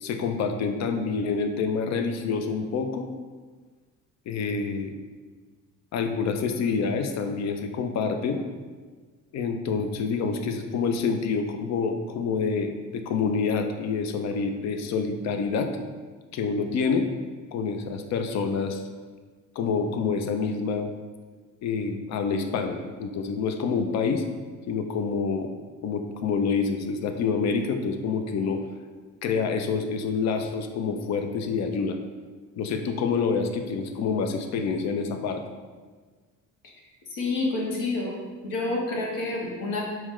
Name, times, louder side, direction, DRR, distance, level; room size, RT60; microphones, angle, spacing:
voice 1, 0.0-3.1 4.3-5.0 5.9-8.4 9.3-15.7 16.3-17.1 17.5-18.8 19.6-20.9 21.6-24.2 24.7-25.5 25.8-28.6 29.2-32.0 32.6-35.4, left 5 dB, 50° left, 6 dB, 0.5 m, -27 dB
voice 2, 37.1-38.1 38.4-39.8, left 2 dB, 70° left, -2 dB, 1.0 m, -28 dB
4.4 x 2.2 x 3.6 m, 1.4 s
supercardioid pair, 80°, 34 cm